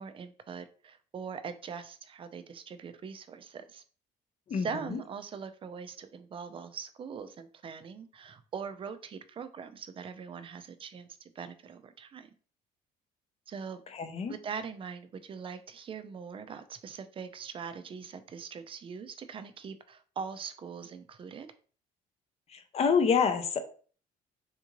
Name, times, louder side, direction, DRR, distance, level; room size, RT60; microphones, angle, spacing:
voice 1, 0.0-3.8 4.5-12.3 13.5-13.8 14.3-21.5, right 6 dB, 30° right, 10 dB, 0.4 m, -42 dB
voice 2, 4.5-5.0 13.9-14.4 22.5-23.6, left 6 dB, 40° left, 9 dB, 0.5 m, -27 dB
3.6 x 2.5 x 2.9 m, 0.41 s
cardioid pair, 110°, 17 cm